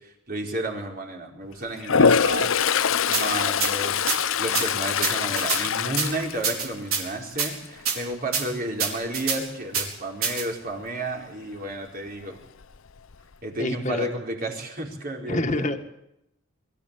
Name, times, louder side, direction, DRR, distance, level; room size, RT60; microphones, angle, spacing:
voice 1, 0.0-2.6 3.1-4.1 4.4-12.4 13.4-15.7, right 1 dB, 45° right, 1 dB, 4.8 m, -32 dB
Toilet flush, 1.8-7.0 7.4-7.8 12.2-12.3 12.6-13.3, left 6 dB, 75° left, 0.7 m, -23 dB
sound 1, 3.1-3.2 3.6-3.7 4.1-4.2 4.5-4.7 5.0-5.6 6.0-6.1 6.4-7.0 7.4-7.5 7.9-8.0 8.3-8.4 8.8-9.4 9.7-9.9 10.2-10.4, right 6 dB, 85° right, 4.7 m, -25 dB
voice 2, 13.6-14.1 15.3-15.8, left 1 dB, 35° left, 5 dB, 1.8 m, -27 dB
23.5 x 15.0 x 8.5 m, 0.83 s
head